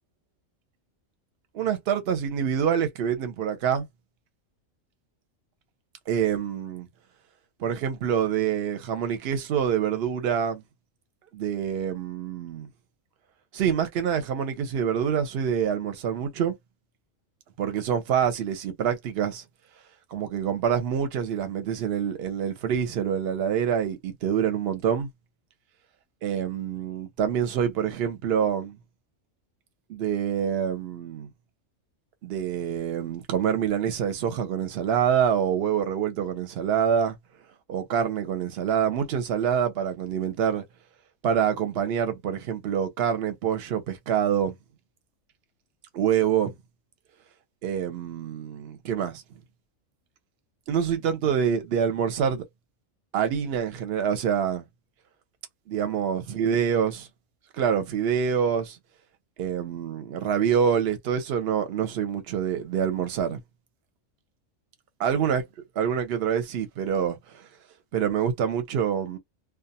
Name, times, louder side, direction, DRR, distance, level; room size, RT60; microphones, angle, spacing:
voice 1, 1.5-3.9 6.1-6.9 7.6-10.6 11.3-12.7 13.5-16.6 17.6-19.4 20.1-25.1 26.2-28.8 29.9-31.3 32.2-37.2 37.7-40.6 41.2-44.5 45.9-46.5 47.6-49.2 50.7-52.4 53.1-54.6 55.7-57.1 57.6-58.8 59.4-63.4 65.0-65.4 65.8-67.4 67.9-69.2, right 8 dB, 60° right, 0.8 m, -26 dB
2.4 x 2.2 x 2.7 m
omnidirectional pair, 1.4 m